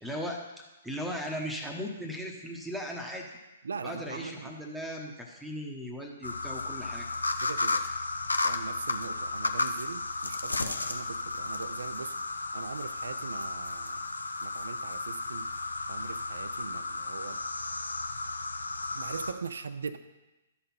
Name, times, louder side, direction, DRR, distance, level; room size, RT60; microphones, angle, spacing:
voice 1, 0.0-0.4 0.8-3.3 3.8-7.1, equal, ahead, 0 dB, 1.0 m, -37 dB
voice 2, 3.6-4.5 7.4-7.9 8.4-14.0 14.4-15.5 15.9-17.4 18.9-20.0, right 5 dB, 65° right, 12 dB, 0.4 m, -40 dB
sound 1, 6.2-19.3, left 3 dB, 80° left, 0.6 m, -33 dB
12.0 x 4.3 x 5.6 m, 1.1 s
figure-of-eight pair, 120°, 0 cm